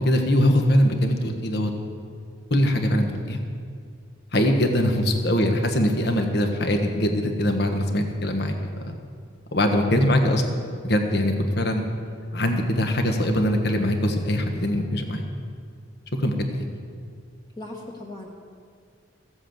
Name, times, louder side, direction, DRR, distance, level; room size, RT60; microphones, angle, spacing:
voice 1, 0.0-1.7 2.5-3.4 4.3-8.6 8.8-9.0 9.5-11.8 12.3-15.2 16.2-16.3, left 1 dB, 55° left, 4 dB, 1.3 m, -22 dB
voice 2, 4.8-5.2 17.6-18.3, left 2 dB, 20° left, -2 dB, 1.2 m, -39 dB
15.0 x 7.9 x 7.8 m, 2.1 s
head